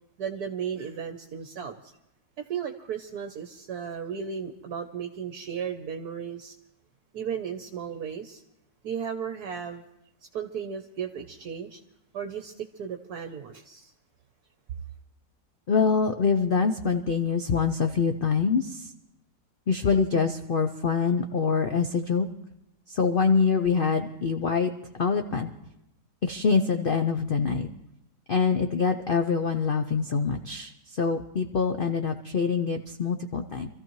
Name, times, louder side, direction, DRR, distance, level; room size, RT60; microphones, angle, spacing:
voice 1, 0.2-1.9 2.4-6.5 7.1-8.4 8.8-9.8 10.3-11.8 12.1-13.9, right 7 dB, 65° right, 6 dB, 1.3 m, -35 dB
voice 2, 15.7-18.9 19.7-22.3 22.9-25.5 26.2-27.7 28.3-33.7, left 5 dB, 80° left, 6 dB, 0.4 m, -25 dB
26.5 x 14.5 x 3.1 m, 0.87 s
omnidirectional pair, 1.9 m